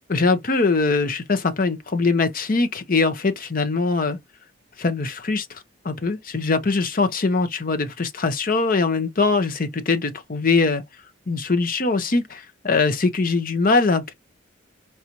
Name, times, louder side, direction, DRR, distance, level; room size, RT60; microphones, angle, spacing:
voice 1, 0.1-4.2 4.8-10.8 11.3-14.1, left 3 dB, 45° left, 0.7 m, -22 dB
4.8 x 2.7 x 2.9 m
head